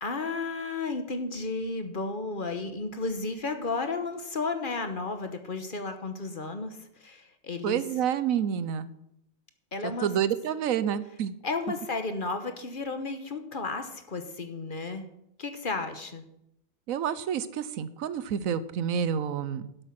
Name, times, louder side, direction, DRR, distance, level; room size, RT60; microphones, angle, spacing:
voice 1, 0.0-7.8 9.7-10.1 11.4-15.1 15.4-16.2, left 3 dB, 40° left, 8 dB, 1.2 m, -33 dB
voice 2, 7.6-8.9 10.0-11.3 16.9-19.7, right 8 dB, 85° right, 15 dB, 1.1 m, -28 dB
12.5 x 7.9 x 5.9 m, 0.80 s
omnidirectional pair, 1.4 m